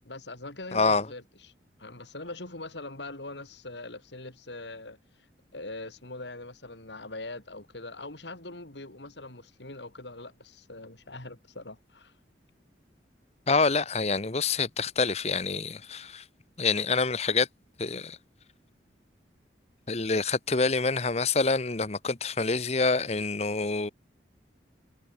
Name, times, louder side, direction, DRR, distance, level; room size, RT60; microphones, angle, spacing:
voice 1, 0.1-1.2 1.8-5.0 5.5-12.1, left 2 dB, 80° left, 3.8 m, -42 dB
voice 2, 0.7-1.1 13.5-16.2 16.6-17.5 17.8-18.2 19.9-23.9, left 4 dB, 35° left, 1.0 m, -26 dB
head